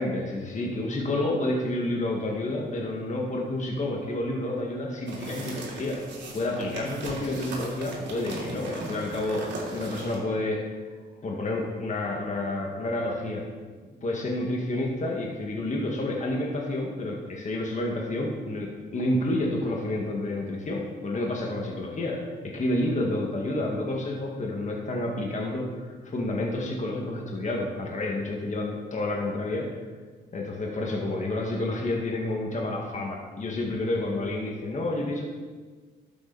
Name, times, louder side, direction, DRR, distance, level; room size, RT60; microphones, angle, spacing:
voice 1, 0.0-6.0 6.3-10.8 11.2-13.4 14.0-29.7 30.3-35.3, left 1 dB, 35° left, -1 dB, 1.8 m, -29 dB
sound 1, 5.1-10.2, right 2 dB, 65° right, 3.0 m, -38 dB
11.5 x 7.8 x 4.1 m, 1.4 s
cardioid pair, 90°, 20 cm